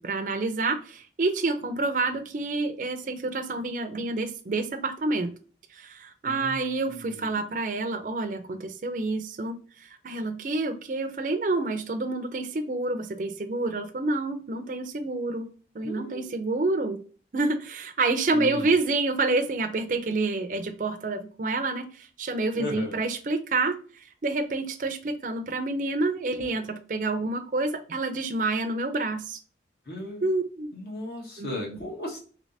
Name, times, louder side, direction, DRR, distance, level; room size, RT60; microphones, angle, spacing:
voice 1, 0.0-5.3 5.7-15.5 15.7-17.0 17.3-29.4 30.2-30.8 31.4-31.8, right 3 dB, 45° right, 7 dB, 0.4 m, -28 dB
voice 2, 6.2-7.5 15.8-16.4 18.3-18.8 22.6-22.9 29.8-30.3 30.7-32.2, left 1 dB, 60° left, -3 dB, 1.5 m, -36 dB
3.2 x 2.9 x 2.6 m, 0.40 s
head